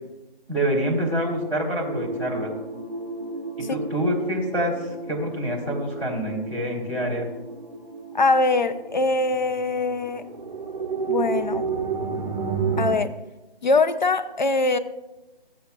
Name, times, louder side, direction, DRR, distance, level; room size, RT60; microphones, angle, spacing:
voice 1, 0.5-2.5 3.6-7.3, equal, 5° left, 2.6 m, -26 dB
sound 1, 1.8-12.9, right 4 dB, 30° right, 1.4 m, -32 dB
voice 2, 8.1-10.2 11.1-11.7 12.8-13.1 13.6-14.8, left 3 dB, 50° left, 0.6 m, -22 dB
14.5 x 8.5 x 2.3 m
figure-of-eight pair, 165°, 31 cm